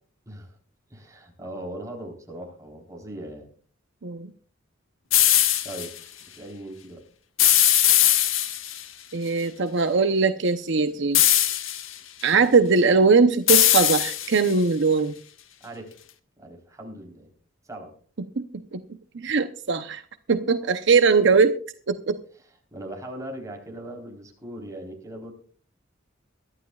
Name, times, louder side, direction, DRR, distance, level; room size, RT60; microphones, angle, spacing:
voice 1, 0.9-3.5 5.6-5.9 6.3-7.0 15.6-16.0 16.4-17.3 17.6-17.9 22.7-25.3, right 1 dB, 15° right, 0 dB, 3.8 m, -39 dB
sound 1, 5.1-5.9 7.4-8.8 11.1-11.9 13.5-14.5, left 12 dB, 90° left, 1.2 m, -20 dB
voice 2, 9.1-11.2 12.2-15.1 18.4-18.5 18.7-18.8 19.1-20.0 20.3-21.6 21.9-22.2, right 4 dB, 65° right, 9 dB, 0.8 m, -20 dB
23.0 x 12.0 x 2.4 m, 0.43 s
head